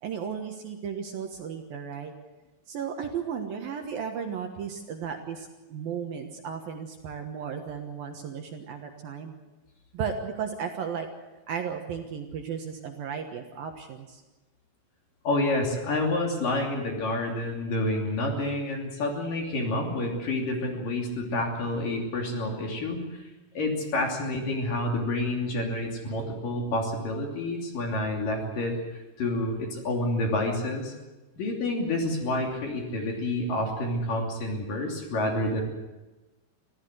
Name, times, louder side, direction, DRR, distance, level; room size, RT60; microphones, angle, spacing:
voice 1, 0.0-2.1 2.7-9.3 9.9-11.1 11.5-14.2, right 7 dB, 65° right, 4 dB, 2.6 m, -35 dB
voice 2, 15.2-23.2 23.5-30.9 31.4-35.6, left 1 dB, 50° left, 1 dB, 4.2 m, -29 dB
25.5 x 16.0 x 7.9 m, 1.1 s
omnidirectional pair, 5.4 m